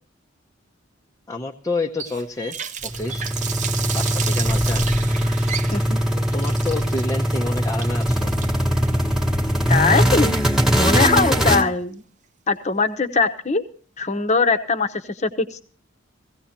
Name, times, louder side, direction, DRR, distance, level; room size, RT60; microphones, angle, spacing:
voice 1, 1.3-2.6 2.8-3.3 3.9-4.9 6.1-8.3, left 3 dB, 15° left, 1 dB, 0.7 m, -29 dB
Water tap faucet, 2.0-10.9, right 8 dB, 35° right, 0.6 m, -33 dB
sound 1, 2.8-11.6, equal, ahead, 1.1 m, -21 dB
voice 2, 9.7-10.4 10.7-12.0 12.5-13.6 14.0-15.6, left 4 dB, 35° left, 9 dB, 0.9 m, -21 dB
17.5 x 16.0 x 2.9 m, 0.42 s
head